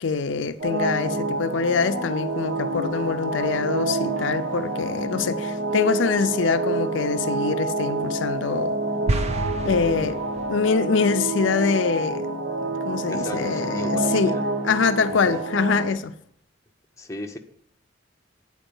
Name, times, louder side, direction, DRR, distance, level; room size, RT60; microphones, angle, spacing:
voice 1, 0.0-8.8 9.6-10.2 10.5-12.3 12.6-14.3 14.6-16.1, left 5 dB, 85° left, 0.5 m, -24 dB
sound 1, 0.6-15.9, right 2 dB, 85° right, 1.1 m, -27 dB
sound 2, 9.1-10.7, right 2 dB, 35° right, 0.5 m, -28 dB
voice 2, 13.1-14.5 15.1-15.4 17.0-17.4, left 1 dB, 15° left, 0.7 m, -36 dB
9.0 x 4.6 x 6.9 m
head